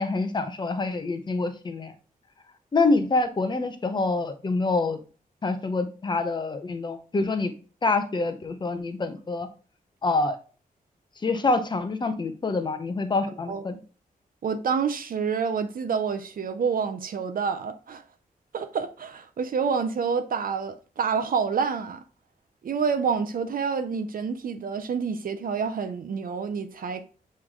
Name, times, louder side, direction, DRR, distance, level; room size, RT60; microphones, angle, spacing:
voice 1, 0.0-1.9 2.7-5.0 5.4-7.5 7.8-9.5 10.0-10.4 11.2-13.7, left 3 dB, 30° left, 0.8 m, -26 dB
voice 2, 13.3-13.8 14.4-18.0 18.5-22.0 22.6-27.0, right 6 dB, 70° right, 0.6 m, -28 dB
8.0 x 3.2 x 3.6 m
wide cardioid pair, 170°, 15 cm